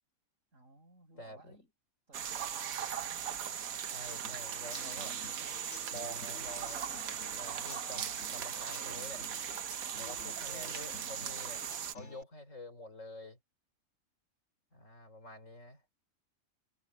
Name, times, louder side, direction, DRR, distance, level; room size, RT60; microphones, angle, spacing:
voice 1, 0.5-1.7 2.1-3.6 10.3-10.8, right 2 dB, 65° right, 7.1 m, -58 dB
voice 2, 1.2-1.6 3.9-5.1 5.9-6.8 7.3-9.3 10.0-11.6 11.9-13.4 14.7-15.8, left 1 dB, 65° left, 4.7 m, -48 dB
sound 1, 2.1-11.9, right 8 dB, 80° right, 1.4 m, -39 dB
Human voice / Acoustic guitar / Drum, 4.2-12.2, left 4 dB, 90° left, 2.8 m, -52 dB
omnidirectional pair, 1.4 m